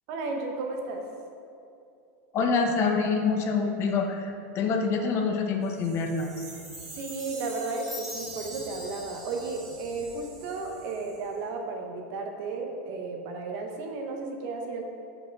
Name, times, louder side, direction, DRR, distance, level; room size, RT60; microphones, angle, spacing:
voice 1, 0.1-1.0 7.0-14.8, right 3 dB, 50° right, 3 dB, 0.9 m, -34 dB
voice 2, 2.3-6.4, left 4 dB, 35° left, 3 dB, 0.6 m, -26 dB
sound 1, 5.6-11.4, right 4 dB, 75° right, 1.1 m, -48 dB
Chime, 6.2-10.6, equal, ahead, 1.2 m, -43 dB
4.9 x 4.2 x 5.8 m, 2.6 s
supercardioid pair, 140°, 8 cm